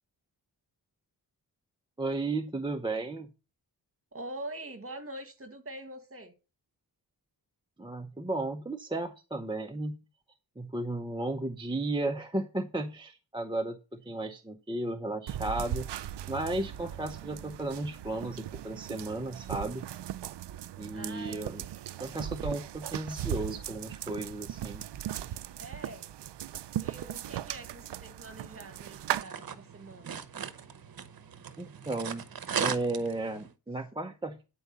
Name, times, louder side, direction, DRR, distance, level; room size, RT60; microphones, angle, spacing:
voice 1, 2.0-3.3 7.8-9.9 10.6-20.1 20.8-21.6 22.0-24.8 31.6-32.2 32.6-34.4, right 2 dB, 10° right, 0.7 m, -34 dB
voice 2, 4.1-6.3 20.9-21.6 25.6-26.1 26.7-30.2, right 1 dB, 35° right, 1.7 m, -44 dB
sound 1, 15.3-29.2, right 12 dB, 80° right, 0.5 m, -38 dB
sound 2, 28.6-33.5, right 7 dB, 60° right, 0.9 m, -38 dB
9.6 x 4.6 x 6.7 m
wide cardioid pair, 120°, 41 cm